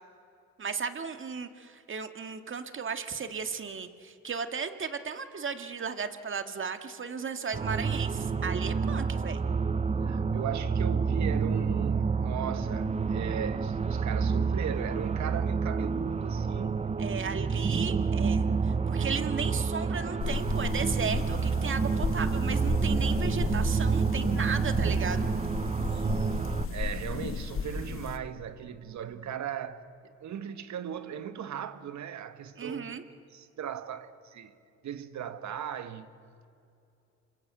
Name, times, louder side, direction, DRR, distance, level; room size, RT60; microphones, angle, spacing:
voice 1, 0.6-9.4 17.0-25.3 32.6-33.0, right 5 dB, 40° right, 2.0 m, -35 dB
sound 1, 7.5-26.7, right 5 dB, 20° right, 0.7 m, -29 dB
voice 2, 10.0-16.8 18.9-19.3 25.9-26.3 26.7-29.8 30.2-32.9 33.3-34.5 34.8-36.1, right 9 dB, 70° right, 1.7 m, -38 dB
sound 2, 20.2-28.2, left 5 dB, 45° left, 1.9 m, -34 dB
27.5 x 24.5 x 8.1 m
cardioid pair, 90°, 30 cm